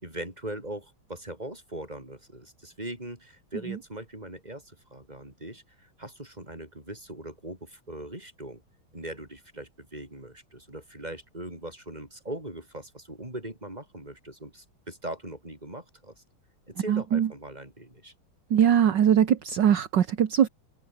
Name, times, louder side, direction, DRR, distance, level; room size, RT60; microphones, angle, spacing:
voice 1, 0.0-8.6 8.9-16.2 16.7-18.1, right 1 dB, 20° right, 6.7 m, -40 dB
voice 2, 16.9-17.3 18.5-20.5, right 9 dB, 60° right, 1.9 m, -21 dB
omnidirectional pair, 2.2 m